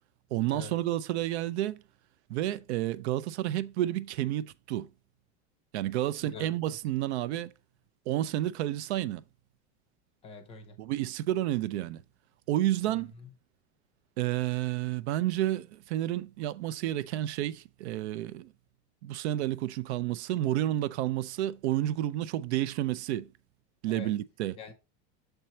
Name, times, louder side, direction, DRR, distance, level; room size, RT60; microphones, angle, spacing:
voice 1, 0.3-1.8 2.3-4.9 5.7-7.5 8.1-9.2 10.8-12.0 12.5-13.1 14.2-18.5 19.0-23.3 23.8-24.6, right 13 dB, 65° right, 0.5 m, -30 dB
voice 2, 6.2-6.8 10.2-10.8 12.9-13.3 23.9-24.1 24.6-24.7, left 4 dB, 15° left, 0.6 m, -45 dB
6.7 x 4.4 x 4.3 m
supercardioid pair, 180°, 35 cm